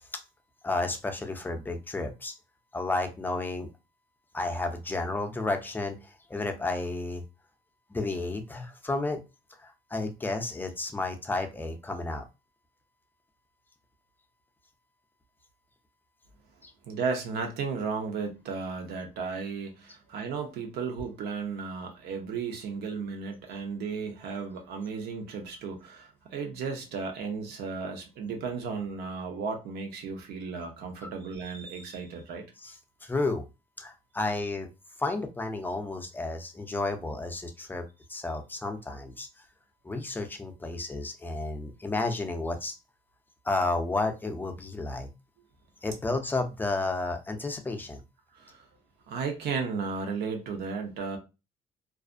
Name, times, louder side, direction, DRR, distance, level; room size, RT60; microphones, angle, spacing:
voice 1, 0.6-2.3 2.7-3.7 4.3-7.2 7.9-9.2 9.6-12.2 16.6-16.7 32.6-32.7 33.0-33.4 33.8-34.7 35.0-37.8 38.1-39.3 39.8-42.8 43.4-45.1 45.8-48.0, left 2 dB, 10° left, 0.5 m, -32 dB
voice 2, 16.8-32.4 48.3-48.7 49.1-51.2, right 5 dB, 75° right, 0.8 m, -34 dB
2.4 x 2.0 x 2.5 m
cardioid pair, 110°, 17 cm